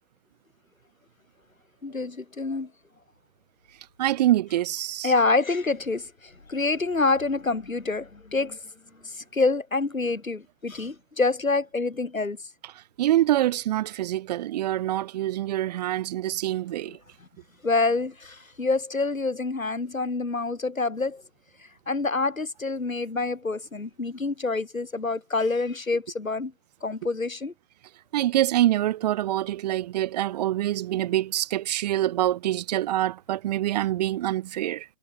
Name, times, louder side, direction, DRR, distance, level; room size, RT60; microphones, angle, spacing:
voice 1, 1.8-2.7 5.0-8.6 9.0-12.4 17.6-21.2 21.9-26.5 26.8-27.5, left 3 dB, 85° left, 6.6 m, -27 dB
voice 2, 4.0-5.1 13.0-17.0 28.1-34.9, right 13 dB, 30° right, 6.7 m, -25 dB
figure-of-eight pair, 150°, 40 cm